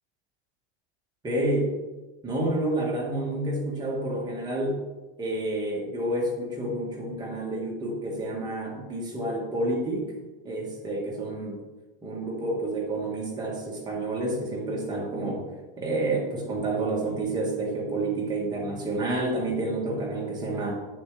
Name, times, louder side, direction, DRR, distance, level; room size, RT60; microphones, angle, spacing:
voice 1, 1.2-1.7 2.2-4.8 5.2-10.1 10.4-11.6 12.0-15.4 15.8-20.8, right 2 dB, 10° right, -2 dB, 1.5 m, -29 dB
8.8 x 7.3 x 3.2 m, 1.2 s
supercardioid pair, 160°, 33 cm